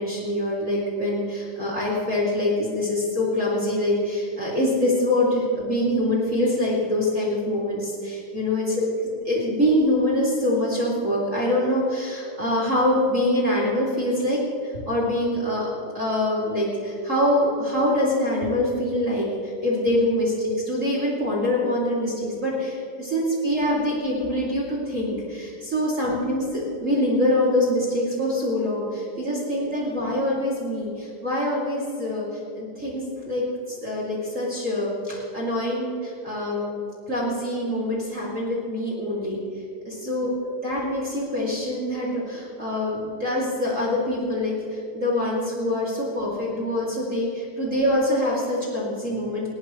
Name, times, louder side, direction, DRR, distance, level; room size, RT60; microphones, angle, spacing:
voice 1, 0.0-8.9 9.2-32.2 32.5-36.8 37.1-39.4 39.8-40.3 40.6-49.5, left 1 dB, 30° right, -5 dB, 1.4 m, -24 dB
20.0 x 16.5 x 3.2 m, 2.6 s
omnidirectional pair, 5.9 m